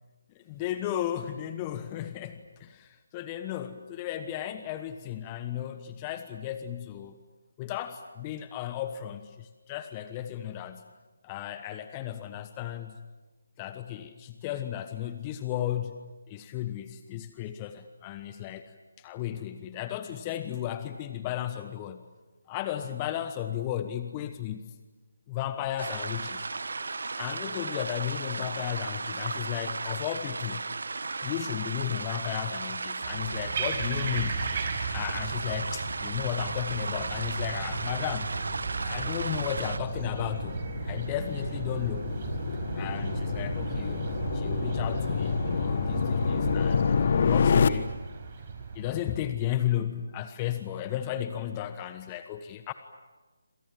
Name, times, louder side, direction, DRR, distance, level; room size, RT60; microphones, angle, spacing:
voice 1, 0.4-7.1 7.6-10.8 11.2-13.0 13.6-15.9 16.3-18.7 19.0-22.0 22.5-24.7 25.3-26.4 27.1-30.6 31.2-34.5 34.9-38.3 38.8-40.6 40.8-42.1 42.7-44.0 44.3-47.9 48.7-52.7, left 11 dB, 20° left, 10 dB, 1.2 m, -34 dB
sound 1, 25.8-39.8, right 3 dB, 65° right, 1.1 m, -35 dB
sound 2, 33.0-49.0, right 5 dB, 35° right, 5.1 m, -35 dB
sound 3, 36.9-47.7, left 6 dB, 45° left, 1.4 m, -29 dB
28.0 x 27.0 x 7.6 m, 1.2 s
figure-of-eight pair, 150°, 0 cm